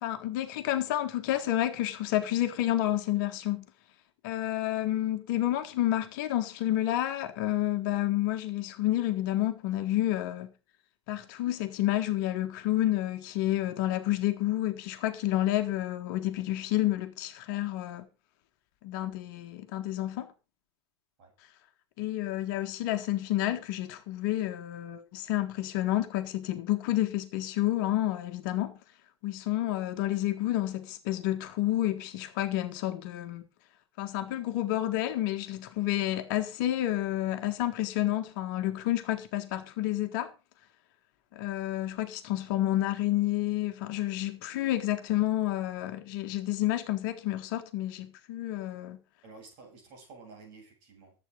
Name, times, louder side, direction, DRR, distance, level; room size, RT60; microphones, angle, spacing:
voice 1, 0.0-3.7 4.2-10.5 11.1-18.1 18.8-20.3 22.0-28.8 29.2-33.4 34.0-40.3 41.3-49.0, left 14 dB, 50° left, 1.6 m, -30 dB
voice 2, 49.2-51.1, right 4 dB, 45° right, 7.5 m, -51 dB
14.5 x 8.4 x 5.2 m
figure-of-eight pair, 90°, 14 cm